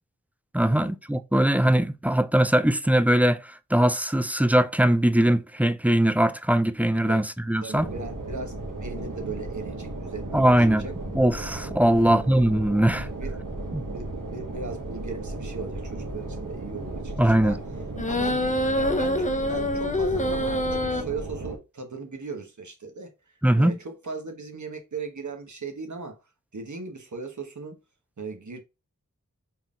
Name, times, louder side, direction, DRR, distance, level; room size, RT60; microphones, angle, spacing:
voice 1, 0.5-7.9 10.3-10.9 11.1-13.1 13.7-13.8 17.2-17.6 23.4-23.8, right 1 dB, 5° right, 0.3 m, -21 dB
voice 2, 7.6-10.9 11.9-12.2 12.9-13.4 13.8-17.6 18.1-18.4 18.7-26.2 26.5-27.8 28.2-28.6, right 4 dB, 65° right, 1.1 m, -38 dB
sound 1, 7.7-21.6, right 2 dB, 80° right, 1.4 m, -35 dB
sound 2, 18.0-21.0, left 1 dB, 25° left, 0.7 m, -25 dB
4.5 x 3.6 x 2.4 m
wide cardioid pair, 50°, 32 cm